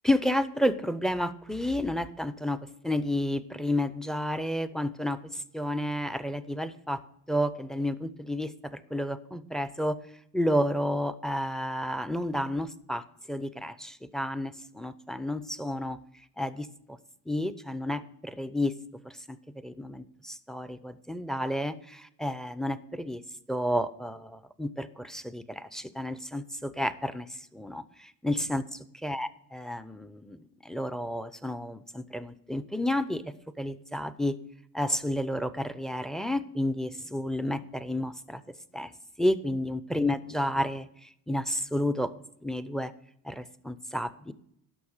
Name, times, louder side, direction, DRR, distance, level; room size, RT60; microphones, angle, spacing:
voice 1, 0.0-2.6 2.8-7.0 7.3-10.0 10.3-16.0 16.4-17.0 17.3-18.8 19.0-19.4 19.6-23.2 23.5-28.6 29.0-33.2 33.6-34.4 34.7-38.4 38.7-38.9 39.2-42.1 42.4-42.9 43.2-44.3, left 1 dB, ahead, 14 dB, 0.7 m, -31 dB
11.5 x 5.9 x 7.2 m, 0.72 s
cardioid pair, 85°, 40 cm